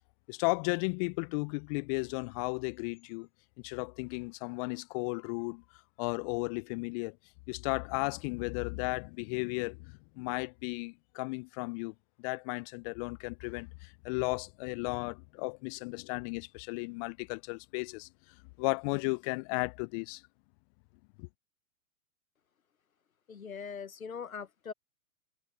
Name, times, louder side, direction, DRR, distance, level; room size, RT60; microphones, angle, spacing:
voice 1, 0.3-3.3 3.6-5.6 6.0-7.2 7.5-11.9 12.2-18.1 18.6-20.2 21.2-21.3, left 33 dB, 25° left, 0.7 m, -34 dB
voice 2, 23.3-24.7, left 6 dB, 75° left, 1.5 m, -41 dB
figure-of-eight pair, 110°, 42 cm